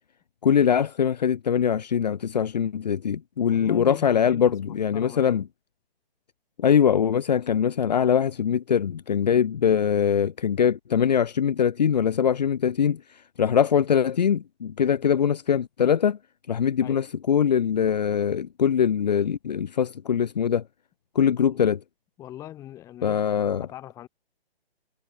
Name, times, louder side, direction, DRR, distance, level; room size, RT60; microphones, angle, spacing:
voice 1, 0.4-5.4 6.6-16.2 16.5-20.6 21.1-21.8 23.0-23.7, left 8 dB, 40° left, 1.6 m, -22 dB
voice 2, 3.5-5.4 16.8-17.1 21.5-21.6 22.2-24.1, left 13 dB, 10° left, 5.2 m, -42 dB
hypercardioid pair, 175°, 31 cm